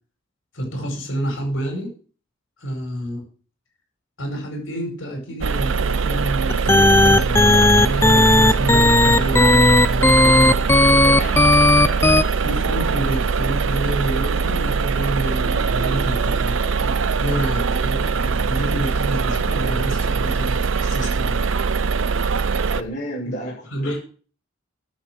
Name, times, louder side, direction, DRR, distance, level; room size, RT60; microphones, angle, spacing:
voice 1, 0.5-1.9 2.6-3.2 4.2-10.5 12.3-21.4 23.2-23.3 23.7-24.0, equal, 85° left, 2 dB, 4.9 m, -28 dB
sound 1, 5.4-22.8, right 5 dB, 75° right, 0.6 m, -22 dB
sound 2, 6.5-12.2, left 2 dB, 15° left, 0.5 m, -14 dB
voice 2, 11.0-11.4 22.7-24.0, equal, 40° left, -8 dB, 6.7 m, -31 dB
11.5 x 6.8 x 6.3 m, 0.40 s
head